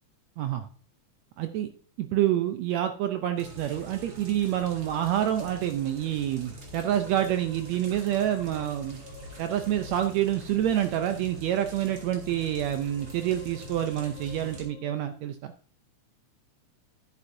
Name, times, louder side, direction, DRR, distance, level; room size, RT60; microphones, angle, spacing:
voice 1, 0.4-0.7 1.4-1.7 2.0-9.0 9.4-15.5, right 11 dB, 80° right, 7 dB, 1.6 m, -27 dB
sound 1, 3.0-15.1, left 3 dB, 10° left, 3.0 m, -52 dB
sound 2, 3.4-14.7, equal, 40° right, 2.4 m, -45 dB
11.0 x 9.7 x 2.6 m, 0.43 s
omnidirectional pair, 3.6 m